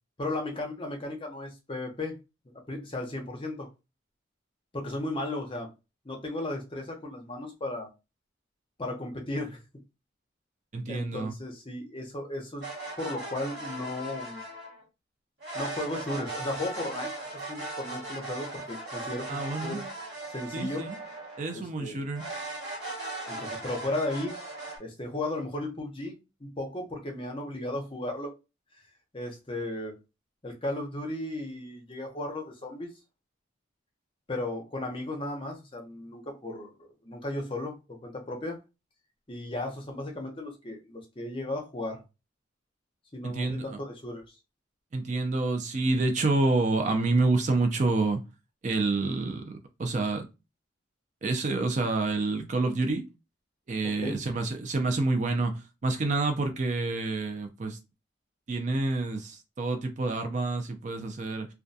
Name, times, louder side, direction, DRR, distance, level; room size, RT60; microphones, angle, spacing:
voice 1, 0.2-2.2 2.7-3.7 4.7-5.7 6.0-7.9 8.8-9.6 10.9-12.7 13.0-14.4 15.5-17.1 17.5-19.8 20.3-20.9 21.5-22.0 23.3-24.3 24.8-28.3 29.1-29.9 30.4-32.9 34.3-38.6 39.3-42.0 43.1-44.2 53.8-54.2, left 1 dB, 25° left, 0.6 m, -35 dB
voice 2, 10.7-11.3 19.3-19.9 20.5-21.0 21.4-22.3 43.2-43.8 44.9-48.2 48.6-49.5 49.8-50.2 51.2-53.0 53.7-57.8 58.5-61.5, right 3 dB, 40° right, 0.4 m, -28 dB
sound 1, 12.6-14.8 15.4-21.6 22.1-24.8, right 2 dB, 60° right, 1.1 m, -38 dB
2.3 x 2.2 x 2.6 m
head